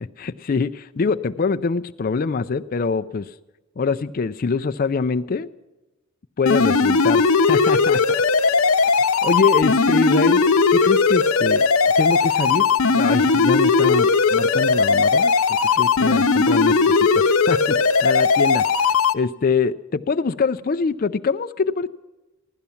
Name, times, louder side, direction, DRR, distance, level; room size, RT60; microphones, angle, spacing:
voice 1, 0.0-3.3 3.8-5.5 6.4-8.0 8.4-8.5 9.2-10.4 10.7-11.7 12.0-15.3 15.8-18.6 19.1-21.9, left 4 dB, 40° left, 9 dB, 0.4 m, -24 dB
sound 1, 6.5-19.1, left 4 dB, 85° left, 0.8 m, -18 dB
16.5 x 12.0 x 7.0 m, 1.1 s
head